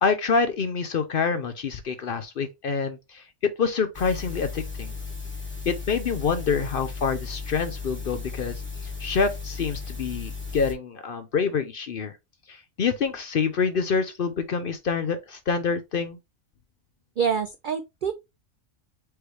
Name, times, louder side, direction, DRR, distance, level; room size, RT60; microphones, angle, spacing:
voice 1, 0.0-4.9 5.7-8.6 9.0-12.1 12.5-16.2, left 5 dB, 55° left, 0.6 m, -26 dB
sound 1, 3.9-10.7, left 4 dB, 10° left, 1.4 m, -35 dB
voice 2, 17.2-18.1, right 7 dB, 70° right, 0.4 m, -26 dB
4.6 x 3.1 x 3.2 m
omnidirectional pair, 1.4 m